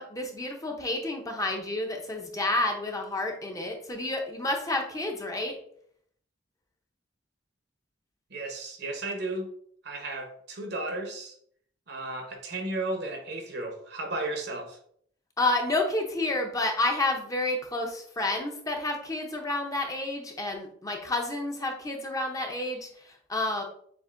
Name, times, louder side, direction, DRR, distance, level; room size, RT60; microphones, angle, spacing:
voice 1, 0.0-5.5 15.4-23.6, left 2 dB, 20° left, 0.6 m, -30 dB
voice 2, 8.3-9.5 9.8-11.3 11.9-14.8, right 2 dB, 60° right, 0.9 m, -34 dB
7.0 x 2.6 x 2.5 m
head